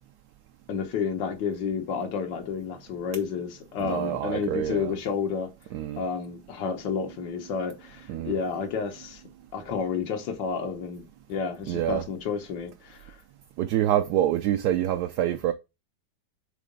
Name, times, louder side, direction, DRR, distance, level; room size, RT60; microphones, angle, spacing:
voice 1, 0.7-5.5 6.0-9.2 9.5-11.0 11.3-13.2, left 6 dB, 85° left, 1.7 m, -30 dB
voice 2, 3.8-4.9 5.7-6.0 8.1-8.4 11.7-12.0 13.6-15.5, right 11 dB, 70° right, 1.1 m, -26 dB
5.0 x 3.7 x 5.1 m
omnidirectional pair, 1.9 m